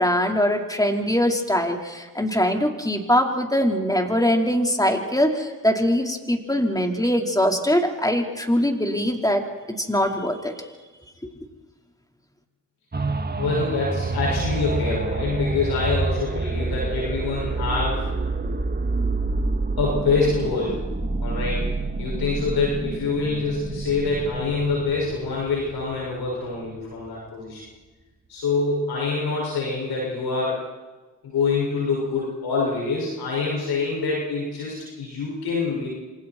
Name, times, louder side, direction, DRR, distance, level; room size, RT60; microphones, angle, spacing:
voice 1, 0.0-9.4 9.8-10.5, equal, 10° left, 2 dB, 4.8 m, -22 dB
sound 1, 12.9-26.6 27.1-27.2, right 3 dB, 25° right, 2.0 m, -28 dB
voice 2, 13.4-18.1 19.8-20.8 21.2-21.6 22.0-27.6 28.3-30.6 31.2-35.9, left 4 dB, 75° left, -4 dB, 6.7 m, -25 dB
27.5 x 25.5 x 4.7 m, 1.3 s
hypercardioid pair, 40°, 38 cm